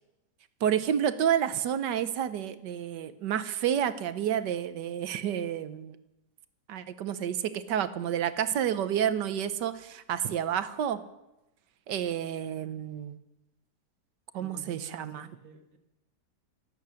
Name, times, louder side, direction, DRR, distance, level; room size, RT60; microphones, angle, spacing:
voice 1, 0.6-6.0 6.7-11.0 11.9-13.2 14.3-15.3, right 9 dB, 80° right, 12 dB, 1.5 m, -30 dB
voice 2, 14.3-15.8, right 4 dB, 50° right, 5 dB, 2.0 m, -51 dB
25.5 x 8.7 x 6.3 m, 0.94 s
omnidirectional pair, 1.9 m